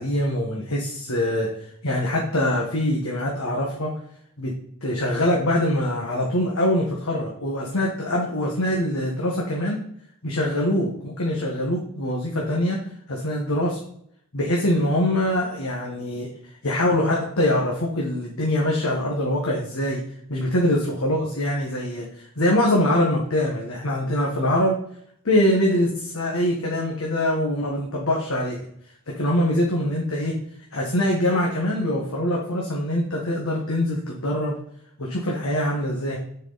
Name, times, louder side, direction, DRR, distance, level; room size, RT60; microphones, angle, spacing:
voice 1, 0.0-1.5 1.8-3.9 4.4-4.5 4.8-9.8 10.2-12.8 13.1-13.8 14.3-16.3 16.6-20.0 20.3-24.8 25.2-28.6 29.2-30.3 30.7-34.5 35.0-36.2, left 1 dB, 65° left, -2 dB, 1.4 m, -23 dB
9.7 x 4.7 x 4.0 m, 0.67 s
head